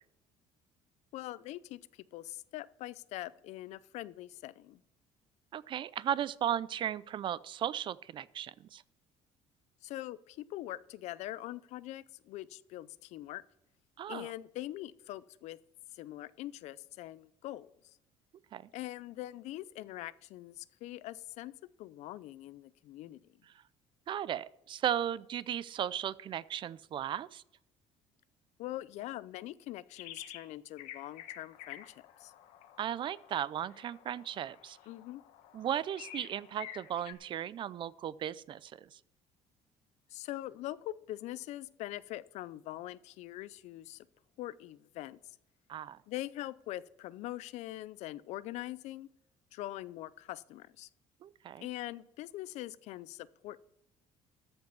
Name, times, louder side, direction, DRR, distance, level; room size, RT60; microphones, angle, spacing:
voice 1, 1.1-4.8 9.8-13.4 14.1-15.6 16.0-17.7 18.7-21.5 21.8-23.2 28.6-32.3 34.9-35.2 40.1-44.1 44.4-45.2 46.1-49.1 49.5-50.9 51.6-53.6, left 15 dB, 70° left, 18 dB, 0.5 m, -43 dB
voice 2, 5.5-8.8 14.0-14.3 18.5-18.6 24.1-27.4 32.8-34.8 35.5-38.9 45.7-46.0 51.2-51.7, right 10 dB, 40° right, 20 dB, 0.4 m, -36 dB
sound 1, 30.0-30.5 30.8-37.1, left 11 dB, 85° left, 1.2 m, -50 dB
13.5 x 5.4 x 6.9 m, 0.83 s
cardioid pair, 130°, 12 cm